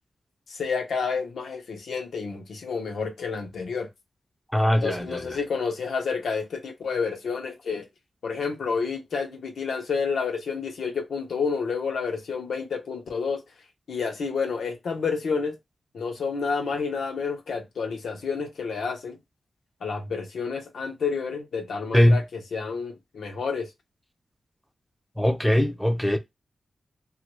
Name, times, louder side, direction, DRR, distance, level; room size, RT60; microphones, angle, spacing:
voice 1, 0.5-3.9 4.8-7.9 8.2-13.4 13.9-15.6 15.9-19.2 19.8-23.7, left 5 dB, 90° left, 0.7 m, -29 dB
voice 2, 4.5-5.2 21.9-22.2 25.2-26.2, equal, ahead, 0.3 m, -21 dB
3.0 x 2.4 x 3.0 m
wide cardioid pair, 175°, 0 cm